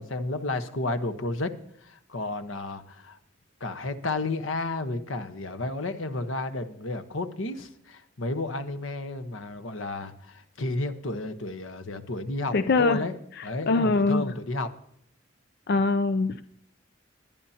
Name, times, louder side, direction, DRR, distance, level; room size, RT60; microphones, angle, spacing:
voice 1, 0.0-1.5 1.8-3.2 3.6-14.7, left 2 dB, 85° left, 9 dB, 1.2 m, -32 dB
voice 2, 12.5-13.0 13.4-14.4 15.7-16.4, left 3 dB, 55° left, 11 dB, 0.5 m, -23 dB
21.0 x 10.5 x 2.9 m, 0.70 s
head